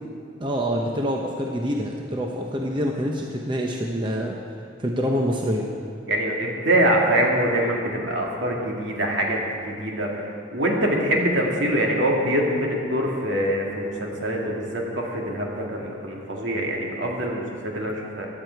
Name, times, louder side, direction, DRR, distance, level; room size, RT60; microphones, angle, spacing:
voice 1, 0.4-4.4 4.8-5.7, equal, 25° right, 0 dB, 0.8 m, -26 dB
voice 2, 6.1-18.3, right 1 dB, 65° right, -1 dB, 2.2 m, -24 dB
16.0 x 11.0 x 4.6 m, 2.3 s
head